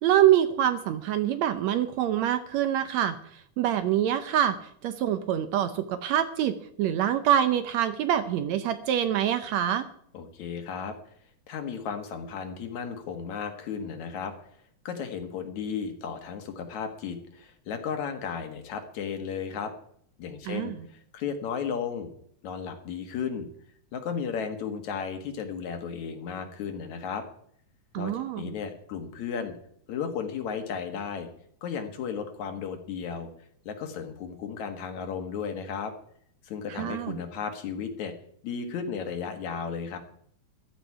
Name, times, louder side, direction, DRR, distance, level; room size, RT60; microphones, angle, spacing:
voice 1, 0.0-3.2 3.6-4.6 4.8-9.9 20.5-20.7 27.9-28.4 36.8-37.2, right 11 dB, 75° right, 10 dB, 1.8 m, -25 dB
voice 2, 10.1-11.0 11.5-14.3 14.9-19.7 20.2-22.1 22.4-23.5 23.9-27.3 28.0-29.5 29.9-31.3 31.6-33.3 33.7-35.9 36.4-38.1 38.4-40.0, left 6 dB, 70° left, 6 dB, 2.7 m, -34 dB
14.5 x 12.0 x 4.8 m, 0.65 s
omnidirectional pair, 3.6 m